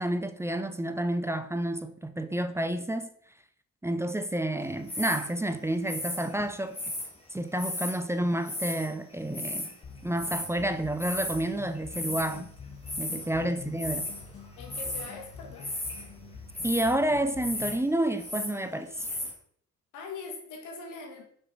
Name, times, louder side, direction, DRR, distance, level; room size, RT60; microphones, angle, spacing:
voice 1, 0.0-3.1 3.8-6.8 7.3-9.7 10.0-12.5 13.0-14.1 16.6-19.1, right 1 dB, 10° right, 0.6 m, -29 dB
sound 1, 4.9-5.3 5.9-7.1 7.6-8.0 8.4-8.9 9.1-9.7 10.2-10.5 11.0-11.5 11.8-12.4 12.9-13.3 13.8-14.2 14.6-15.1 15.6-16.1 16.5-16.9 17.4-17.8 18.0-18.6 19.0-19.3, left 1 dB, 20° left, 2.3 m, -35 dB
sound 2, 9.8-17.9, left 5 dB, 45° left, 1.6 m, -46 dB
voice 2, 13.1-13.6 14.6-15.7 19.9-21.3, left 4 dB, 90° left, 1.9 m, -42 dB
6.4 x 6.1 x 4.7 m
cardioid pair, 90°, 30 cm